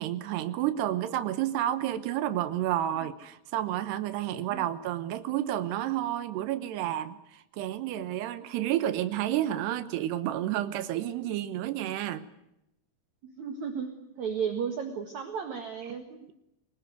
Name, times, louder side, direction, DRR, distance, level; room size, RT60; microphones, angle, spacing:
voice 1, 0.0-12.3, right 12 dB, 85° right, 12 dB, 3.2 m, -30 dB
voice 2, 13.2-16.2, right 7 dB, 55° right, 5 dB, 2.6 m, -34 dB
23.5 x 19.5 x 9.3 m, 0.82 s
omnidirectional pair, 4.6 m